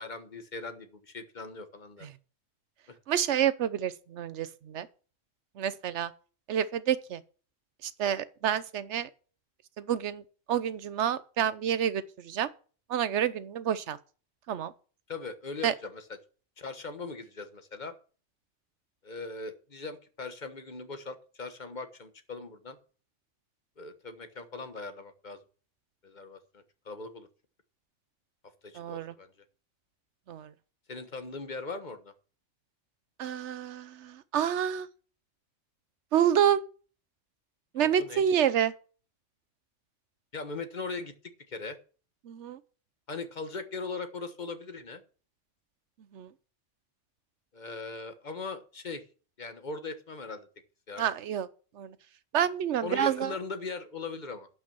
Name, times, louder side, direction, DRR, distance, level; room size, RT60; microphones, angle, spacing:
voice 1, 0.0-2.1 2.9-3.0 15.1-16.0 16.6-17.9 19.0-22.8 23.8-25.4 26.0-27.3 28.6-29.3 30.9-32.1 37.8-38.2 40.3-41.1 41.5-41.8 43.1-45.0 47.5-49.0 49.4-50.5 50.9-51.0 52.8-54.5, left 3 dB, 40° left, 1.3 m, -40 dB
voice 2, 3.1-4.9 5.6-6.1 6.5-7.2 7.8-9.1 9.8-10.2 10.5-12.5 12.9-14.0 14.5-14.7 15.6-15.7 28.7-29.1 30.3-30.5 33.2-34.9 36.1-36.6 37.7-38.7 42.2-42.6 46.1-46.3 51.0-51.5 51.8-51.9 52.3-53.3, right 9 dB, 70° right, 1.0 m, -28 dB
11.5 x 5.9 x 6.9 m
omnidirectional pair, 1.2 m